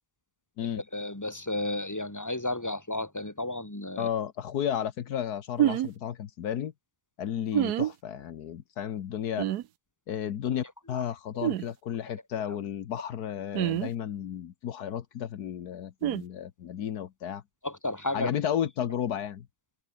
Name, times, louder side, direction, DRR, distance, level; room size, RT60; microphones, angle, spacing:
voice 1, 0.7-4.1 7.5-7.6 10.8-11.0 12.4-12.6 17.6-18.3, left 2 dB, 10° left, 2.9 m, -33 dB
voice 2, 4.0-6.7 7.2-9.4 10.1-17.4 18.1-19.5, left 9 dB, 80° left, 1.6 m, -33 dB
sound 1, 5.6-5.9 7.5-7.9 9.4-9.6 11.4-11.6 13.5-13.9 16.0-16.2, right 13 dB, 80° right, 1.3 m, -26 dB
omnidirectional pair, 1.7 m